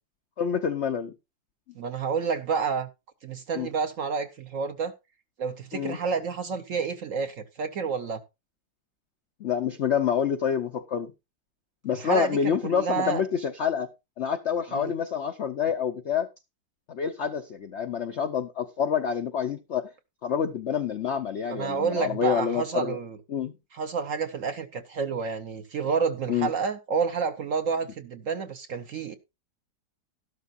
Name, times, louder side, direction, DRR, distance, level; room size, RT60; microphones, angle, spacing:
voice 1, 0.4-1.1 3.5-3.7 5.7-6.0 9.4-11.1 11.8-13.9 14.2-16.3 16.9-19.9 20.2-23.0 23.3-23.6 26.3-26.5, left 7 dB, 65° left, 0.6 m, -27 dB
voice 2, 1.7-2.9 3.2-4.9 5.4-8.2 11.9-13.2 14.7-14.9 21.5-23.2 23.7-29.1, right 5 dB, 55° right, 0.9 m, -29 dB
12.5 x 12.0 x 2.5 m
omnidirectional pair, 2.0 m